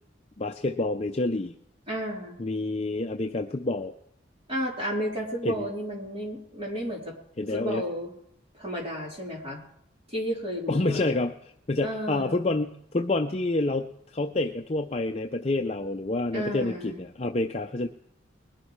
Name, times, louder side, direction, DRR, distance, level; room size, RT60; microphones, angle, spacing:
voice 1, 0.4-1.5 2.4-3.9 5.4-5.7 7.4-7.8 10.7-17.9, left 2 dB, 35° left, 4 dB, 0.6 m, -28 dB
voice 2, 1.9-2.4 4.5-7.1 7.5-8.1 8.6-9.6 10.1-11.1 11.8-12.4 16.3-17.0, equal, 30° right, -3 dB, 3.8 m, -32 dB
21.0 x 11.5 x 3.2 m, 0.71 s
head